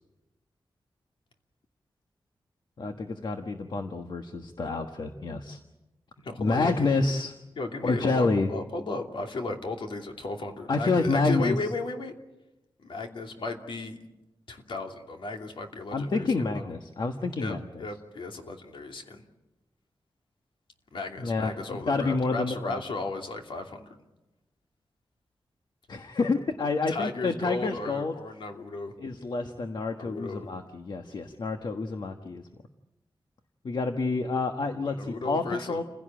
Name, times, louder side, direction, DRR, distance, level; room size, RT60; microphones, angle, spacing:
voice 1, 2.8-5.6 6.4-7.3 7.8-8.5 10.7-11.5 15.9-17.8 21.2-22.8 25.9-28.1 29.0-32.4 33.6-35.8, left 3 dB, 60° left, 6 dB, 1.4 m, -28 dB
voice 2, 6.2-7.0 7.6-12.1 12.8-14.0 14.5-16.3 16.5-16.7 17.4-19.2 20.9-23.9 26.9-28.9 30.0-30.5 34.7-35.8, left 3 dB, 80° left, 3 dB, 2.8 m, -35 dB
29.0 x 16.5 x 8.9 m, 1.0 s
wide cardioid pair, 160°, 9 cm